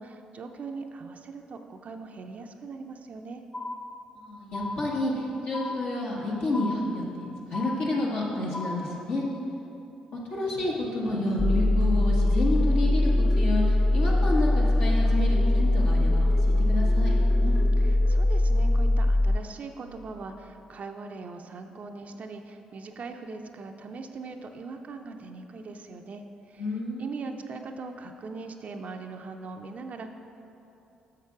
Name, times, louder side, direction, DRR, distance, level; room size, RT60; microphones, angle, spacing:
voice 1, 0.0-3.4 17.4-26.7 27.0-30.1, right 4 dB, 50° right, 5 dB, 0.5 m, -40 dB
sound 1, 3.5-4.2 4.5-5.2 5.5-6.2 6.5-7.2 7.5-8.2 8.5-9.1, left 2 dB, 35° left, 1.2 m, -37 dB
voice 2, 4.1-9.2 10.1-17.1 26.6-27.1, left 2 dB, 65° left, -5 dB, 1.4 m, -30 dB
sound 2, 10.3-18.8, left 2 dB, 90° left, 1.2 m, -42 dB
sound 3, 11.4-19.4, left 1 dB, 5° left, 0.4 m, -22 dB
6.6 x 6.4 x 4.7 m, 2.8 s
hypercardioid pair, 50°, 3 cm